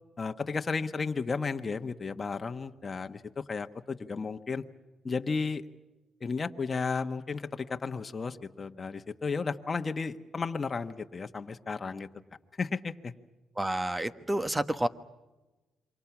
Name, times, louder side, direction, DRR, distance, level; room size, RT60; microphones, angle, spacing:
voice 1, 0.2-4.6 5.0-5.6 6.2-12.1 12.6-13.1, left 4 dB, 35° left, 6 dB, 1.3 m, -33 dB
voice 2, 13.6-14.9, right 1 dB, 15° right, 12 dB, 1.3 m, -29 dB
28.0 x 24.5 x 6.1 m, 1.1 s
cardioid pair, 90°, 0 cm